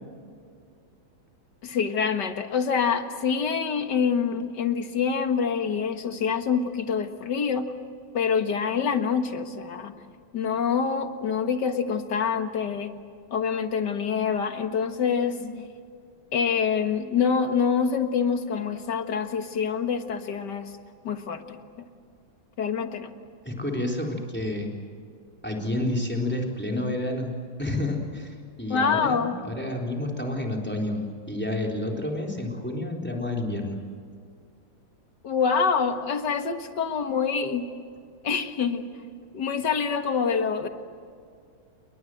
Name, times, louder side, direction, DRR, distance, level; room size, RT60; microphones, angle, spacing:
voice 1, 1.6-7.7 8.1-9.9 10.3-13.0 13.3-15.7 16.3-20.7 21.0-21.9 22.6-23.1 28.7-29.4 35.2-37.7 38.2-38.9 39.3-40.7, left 6 dB, 60° left, 7 dB, 2.2 m, -26 dB
voice 2, 23.5-24.7 25.4-33.8, left 1 dB, 5° left, 1 dB, 3.7 m, -30 dB
28.5 x 22.5 x 7.7 m, 2.3 s
omnidirectional pair, 2.2 m